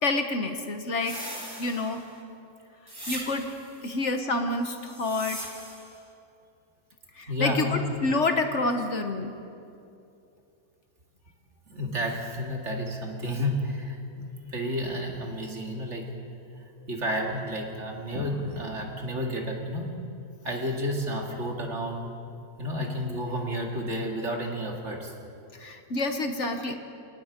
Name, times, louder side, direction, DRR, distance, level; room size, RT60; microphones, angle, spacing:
voice 1, 0.0-2.0 3.1-3.5 3.8-5.4 7.1-9.3 25.6-26.7, left 2 dB, 55° left, 6 dB, 1.5 m, -28 dB
sound 1, 1.0-2.2 2.9-3.7 4.7-6.0, right 1 dB, 15° right, 2.9 m, -40 dB
voice 2, 7.3-7.8 11.7-16.1 16.9-19.9 20.4-22.1 22.6-25.1, equal, 50° right, 1 dB, 2.7 m, -31 dB
30.0 x 18.5 x 5.2 m, 2.6 s
omnidirectional pair, 1.5 m